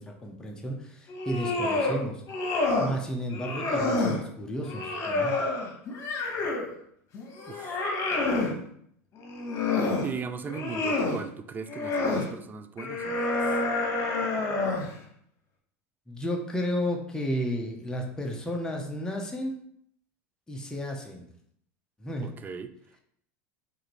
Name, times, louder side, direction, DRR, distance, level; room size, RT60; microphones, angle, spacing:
voice 1, 0.0-2.2 2.8-5.3 16.1-19.6 20.5-21.3 22.0-22.3, equal, 10° left, 1 dB, 0.7 m, -32 dB
sound 1, 1.1-2.0 2.3-3.0 3.3-4.2 4.7-6.7 7.1-8.5 9.2-10.1 10.4-11.2 11.7-12.3 12.8-14.9, left 3 dB, 40° left, 1.1 m, -28 dB
voice 2, 7.5-7.8 10.0-13.3 14.2-14.3 22.2-22.7, right 5 dB, 25° right, 11 dB, 0.3 m, -38 dB
4.7 x 2.6 x 3.0 m, 0.68 s
supercardioid pair, 105°, 8 cm